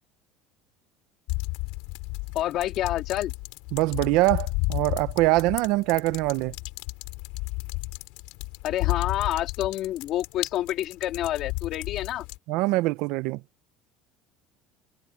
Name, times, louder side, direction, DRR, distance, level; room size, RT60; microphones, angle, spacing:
sound 1, 1.3-12.4, left 26 dB, 80° left, 3.1 m, -33 dB
voice 1, 2.3-3.3 8.6-12.2, left 13 dB, 50° left, 3.1 m, -28 dB
voice 2, 3.7-6.5 12.5-13.4, right 20 dB, 70° right, 0.6 m, -23 dB
cardioid pair, 150°, 0 cm